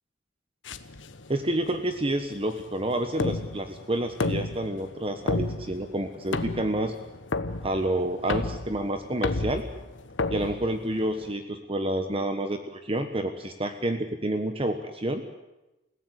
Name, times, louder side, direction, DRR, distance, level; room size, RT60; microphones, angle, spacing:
sound 1, 0.7-11.3, left 2 dB, 80° left, 1.4 m, -33 dB
voice 1, 1.3-6.9 7.6-9.6 10.3-15.2, right 1 dB, 30° right, 7 dB, 1.4 m, -29 dB
28.5 x 17.0 x 8.2 m, 0.99 s
head